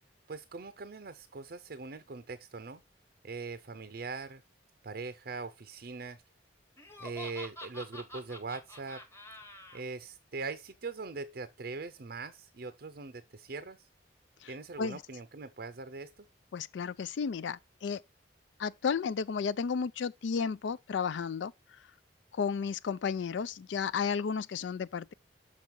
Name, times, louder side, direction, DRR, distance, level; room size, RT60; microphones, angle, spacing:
voice 1, 0.3-2.8 3.2-4.4 4.8-6.2 7.0-9.0 9.7-13.9 14.5-16.3, right 4 dB, 55° right, 0.5 m, -41 dB
Laughter, 6.8-9.8, left 1 dB, 15° left, 1.1 m, -47 dB
voice 2, 16.5-18.0 18.6-21.5 22.3-25.1, left 6 dB, 75° left, 0.4 m, -33 dB
6.5 x 5.3 x 4.5 m
head